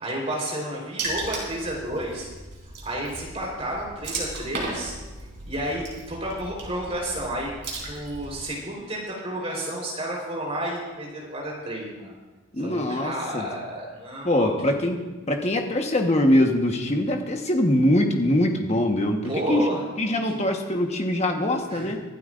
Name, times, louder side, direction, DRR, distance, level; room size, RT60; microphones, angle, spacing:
voice 1, 0.0-2.3 2.8-5.0 5.5-7.5 7.8-12.1 12.6-14.7 19.2-19.8 20.3-20.4 21.7-21.9, right 1 dB, 30° right, -2 dB, 4.0 m, -31 dB
Water / Splash splatter, 1.0-8.4, right 2 dB, 50° right, 3.9 m, -36 dB
voice 2, 12.5-13.5 14.2-19.7 20.0-22.0, left 1 dB, 30° left, 3 dB, 1.2 m, -23 dB
24.0 x 12.5 x 2.6 m, 1.2 s
head